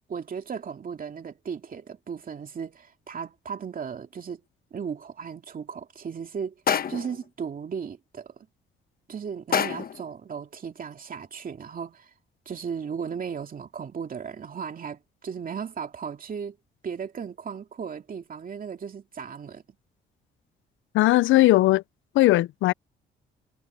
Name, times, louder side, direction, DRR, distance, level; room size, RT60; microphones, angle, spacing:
voice 1, 0.1-4.4 4.7-6.5 6.9-8.3 9.1-12.1 12.5-16.6 16.8-19.6, right 6 dB, 45° right, 2.5 m, -36 dB
sound 1, 6.7-7.2 9.5-10.1, left 8 dB, 50° left, 1.2 m, -26 dB
voice 2, 20.9-21.8 22.2-22.7, left 17 dB, 80° left, 0.5 m, -18 dB
cardioid pair, 90°, 20 cm